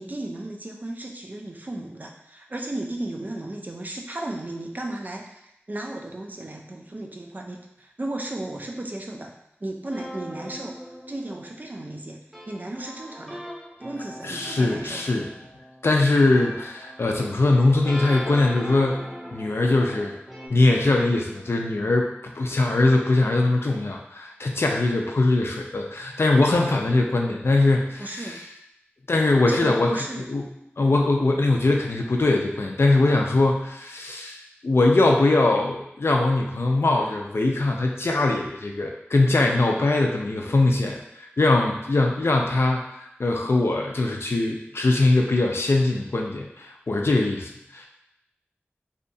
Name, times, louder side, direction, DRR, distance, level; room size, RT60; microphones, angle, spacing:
voice 1, 0.0-9.3 9.6-10.8 11.1-13.4 13.8-15.0 28.0-28.4 29.5-30.3, right 1 dB, 40° right, 1 dB, 0.4 m, -34 dB
sound 1, 9.9-20.5, equal, ahead, 0.6 m, -40 dB
voice 2, 14.2-15.3 15.8-20.2 20.5-22.1 22.4-28.4 29.1-30.0 30.3-30.4 30.8-47.9, left 2 dB, 70° left, 1 dB, 0.4 m, -22 dB
2.7 x 2.2 x 2.6 m, 0.81 s
wide cardioid pair, 50°, 4 cm